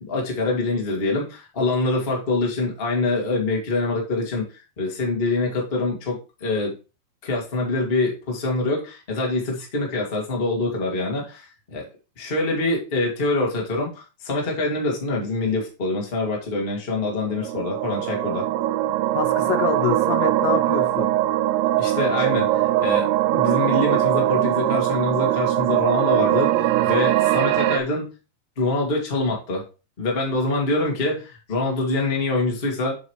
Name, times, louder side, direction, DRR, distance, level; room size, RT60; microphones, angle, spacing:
voice 1, 0.0-4.5 4.8-6.7 7.2-11.9 12.2-18.5 21.8-28.1 28.6-29.6 30.0-33.0, left 2 dB, 30° left, 1.1 m, -25 dB
sound 1, 17.1-27.8, right 14 dB, 80° right, 2.6 m, -21 dB
voice 2, 19.1-21.2, left 10 dB, 85° left, 3.0 m, -26 dB
7.3 x 6.4 x 3.1 m
omnidirectional pair, 4.9 m